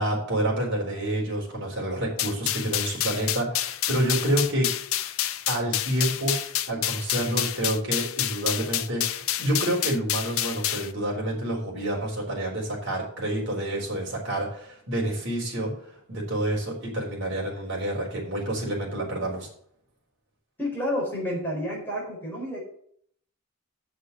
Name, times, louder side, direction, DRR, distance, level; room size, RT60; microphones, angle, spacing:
voice 1, 0.0-4.7 5.5-6.4 6.7-19.5, right 1 dB, 55° right, -3 dB, 3.9 m, -28 dB
sound 1, 2.2-10.9, left 12 dB, 70° left, 0.6 m, -28 dB
voice 2, 20.6-22.6, left 1 dB, 10° left, -4 dB, 4.5 m, -30 dB
7.2 x 6.7 x 7.9 m, 0.63 s
head